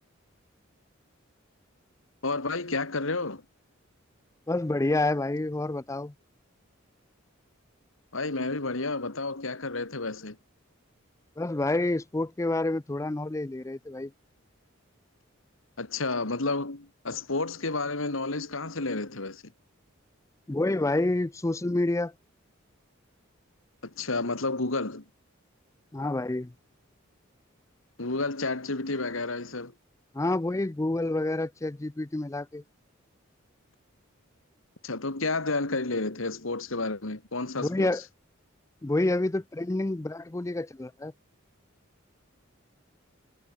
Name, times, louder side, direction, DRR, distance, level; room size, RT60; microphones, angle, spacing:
voice 1, 2.2-3.4 8.1-10.4 15.8-19.4 23.8-25.0 28.0-29.7 34.8-37.9, left 3 dB, 75° left, 2.2 m, -31 dB
voice 2, 4.5-6.1 11.4-14.1 20.5-22.1 25.9-26.5 30.1-32.6 37.6-38.0 38.8-41.1, left 2 dB, 15° left, 0.4 m, -28 dB
head